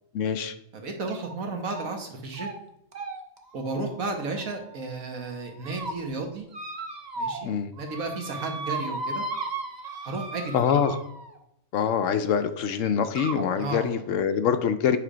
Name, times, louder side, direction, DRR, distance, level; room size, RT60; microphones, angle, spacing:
voice 1, 0.1-0.5 7.4-7.7 10.5-11.0 11.7-15.0, left 7 dB, 70° left, 10 dB, 0.9 m, -25 dB
voice 2, 0.7-2.5 3.5-6.4 7.2-9.2 10.0-10.8 13.6-13.9, right 3 dB, 75° right, 3 dB, 1.6 m, -33 dB
sound 1, 1.1-1.3 1.7-2.1 2.3-2.6 2.9-4.8 5.4-5.9 6.5-7.5 7.8-11.4 12.4-12.5 13.2-13.5, right 3 dB, 40° right, 0.7 m, -36 dB
7.8 x 3.4 x 5.0 m, 0.80 s
omnidirectional pair, 1.5 m